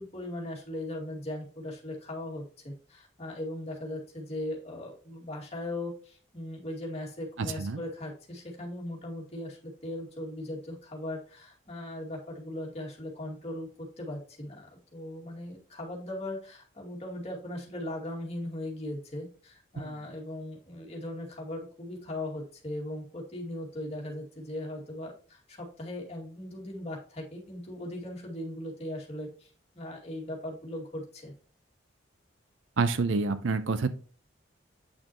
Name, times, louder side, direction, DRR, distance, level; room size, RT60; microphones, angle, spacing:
voice 1, 0.0-31.3, left 1 dB, 30° left, -2 dB, 2.3 m, -39 dB
voice 2, 7.4-7.8 32.8-33.9, right 4 dB, 70° right, 12 dB, 0.6 m, -27 dB
8.8 x 6.1 x 3.0 m, 0.40 s
head